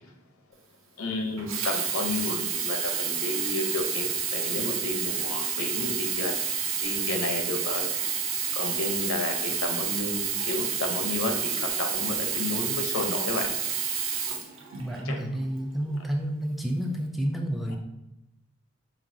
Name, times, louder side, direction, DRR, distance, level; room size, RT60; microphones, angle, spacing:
voice 1, 1.0-6.4 6.8-8.1 8.5-13.5 15.0-15.2, left 2 dB, 80° left, 4 dB, 0.7 m, -32 dB
Sink (filling or washing), 1.4-15.1 15.9-16.0, right 7 dB, 65° right, 0.6 m, -29 dB
voice 2, 14.8-17.8, equal, ahead, 2 dB, 0.3 m, -30 dB
5.3 x 2.7 x 2.6 m, 0.90 s
head